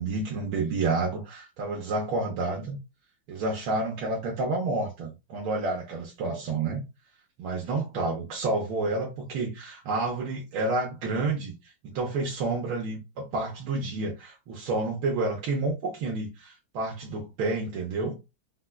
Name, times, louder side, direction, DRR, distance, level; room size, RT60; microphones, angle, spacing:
voice 1, 0.0-2.8 3.3-6.8 7.4-11.5 11.8-18.2, right 3 dB, 80° right, 1.5 m, -29 dB
4.5 x 2.2 x 2.2 m
omnidirectional pair, 2.2 m